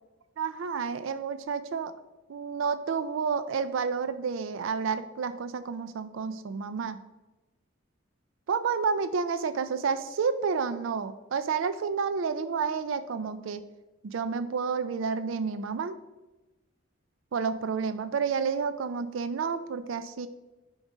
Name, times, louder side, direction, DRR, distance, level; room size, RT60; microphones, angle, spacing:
voice 1, 0.4-1.9 2.3-7.0 8.5-13.6 14.0-16.0 17.3-20.3, right 5 dB, 75° right, 12 dB, 0.4 m, -30 dB
9.7 x 3.9 x 5.0 m, 1.1 s
head